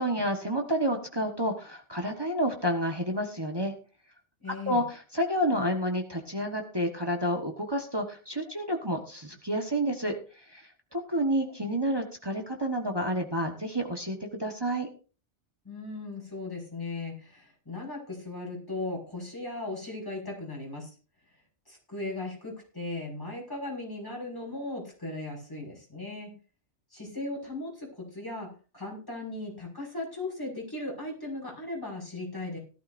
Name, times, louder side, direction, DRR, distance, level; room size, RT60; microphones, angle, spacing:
voice 1, 0.0-3.7 4.7-14.9, equal, 20° right, 2 dB, 1.4 m, -30 dB
voice 2, 4.4-4.8 15.6-20.9 21.7-26.3 26.9-28.5 28.7-32.6, left 2 dB, 20° left, -3 dB, 6.0 m, -37 dB
18.0 x 12.0 x 2.6 m, 0.36 s
omnidirectional pair, 1.2 m